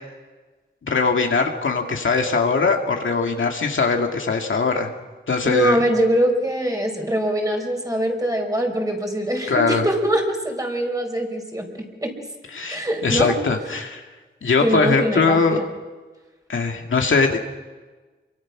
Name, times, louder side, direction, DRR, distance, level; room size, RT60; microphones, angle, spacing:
voice 1, 0.8-4.9 5.3-5.8 9.5-9.9 12.5-14.0 14.4-15.6 16.5-17.4, left 4 dB, 80° left, 3 dB, 2.3 m, -21 dB
voice 2, 5.4-12.1 12.7-13.3 14.6-15.4, equal, 15° right, 2 dB, 4.9 m, -23 dB
27.0 x 24.0 x 6.1 m, 1.3 s
wide cardioid pair, 75°, 20 cm